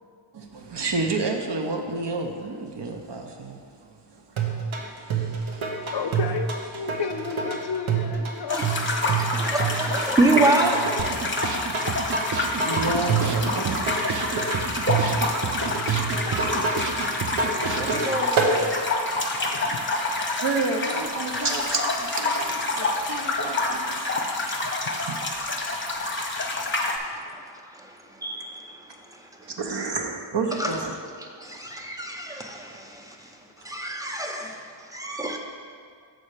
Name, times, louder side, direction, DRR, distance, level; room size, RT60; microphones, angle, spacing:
voice 1, 0.3-3.6 4.1-4.2 4.6-5.9 6.9-7.0 9.4-9.5 11.3-11.6 12.4-13.8 20.4-24.1 25.1-25.2 29.5-31.0, right 3 dB, 60° right, 3 dB, 0.9 m, -31 dB
sound 1, 4.4-18.6, right 4 dB, 85° right, 1.0 m, -27 dB
voice 2, 5.9-9.2 19.4-19.9 24.6-25.0, left 6 dB, 55° left, 5 dB, 0.5 m, -33 dB
sound 2, 8.5-27.0, left 2 dB, 25° left, 0.8 m, -28 dB
voice 3, 9.3-10.9 17.8-18.4 19.7-19.8 24.4-24.6 26.0-26.1 26.3-26.5 26.9-27.4 27.7-29.5 30.5-30.7 31.2-35.4, right 2 dB, 5° right, 1 dB, 0.8 m, -28 dB
sound 3, 11.0-18.0, right 5 dB, 40° right, 0.5 m, -32 dB
6.5 x 4.3 x 6.6 m, 2.2 s
wide cardioid pair, 80°, 48 cm